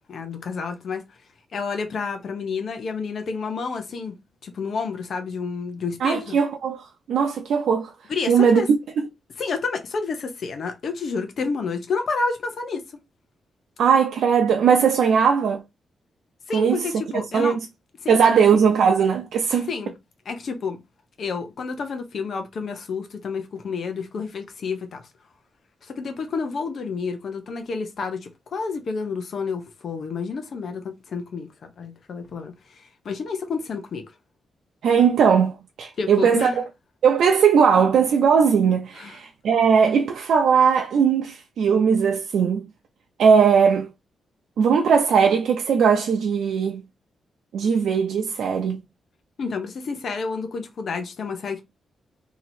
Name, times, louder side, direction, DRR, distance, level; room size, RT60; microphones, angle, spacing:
voice 1, 0.1-1.0 1.5-4.2 4.4-6.4 8.1-8.7 9.4-12.8 16.5-17.6 18.0-18.5 19.7-19.9 20.3-20.8 21.2-25.0 25.8-34.1 36.0-36.6 38.9-39.2 49.4-51.6, left 4 dB, 55° left, 0.8 m, -30 dB
voice 2, 6.0-7.9 8.3-8.8 13.8-15.6 16.5-17.6 18.1-19.7 34.8-36.7 37.0-42.6 43.2-43.9 44.6-46.8 47.5-48.8, right 6 dB, 75° right, 0.5 m, -19 dB
2.9 x 2.9 x 4.1 m
wide cardioid pair, 140°, 0 cm